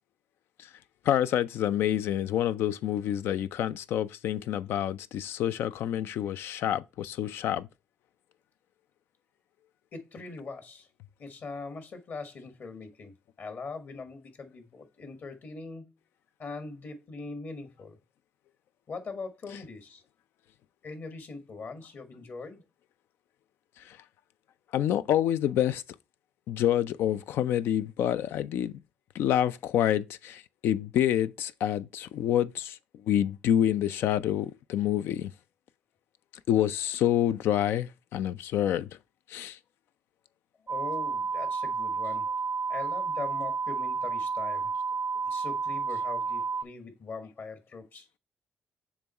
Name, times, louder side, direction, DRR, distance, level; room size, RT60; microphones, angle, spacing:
voice 1, 1.1-7.7 19.5-19.6 23.9-24.0 24.7-25.8 26.5-28.7 29.1-32.8 33.1-35.3 36.5-38.9 39.3-39.6, left 11 dB, 85° left, 0.4 m, -27 dB
voice 2, 9.9-10.9 11.2-15.9 16.4-18.0 18.9-20.0 20.8-22.6 40.6-42.3 42.7-44.7 45.2-48.1, left 4 dB, 60° left, 1.7 m, -41 dB
sound 1, 40.7-46.6, right 5 dB, 40° right, 0.4 m, -31 dB
7.2 x 3.1 x 4.3 m
supercardioid pair, 65°, 4 cm